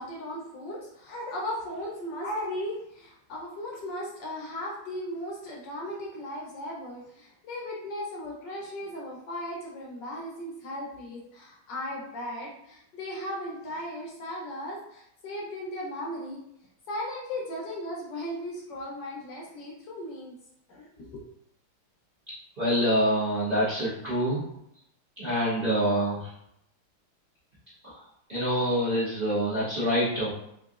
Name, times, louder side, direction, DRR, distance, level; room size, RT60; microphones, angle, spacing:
voice 1, 0.0-16.4 16.9-20.3 20.7-21.2, left 1 dB, 65° left, -3 dB, 1.3 m, -37 dB
voice 2, 22.6-24.4 25.2-26.3 27.8-28.0 28.3-30.3, equal, 30° right, -11 dB, 1.1 m, -26 dB
3.8 x 3.3 x 2.4 m, 0.77 s
omnidirectional pair, 2.3 m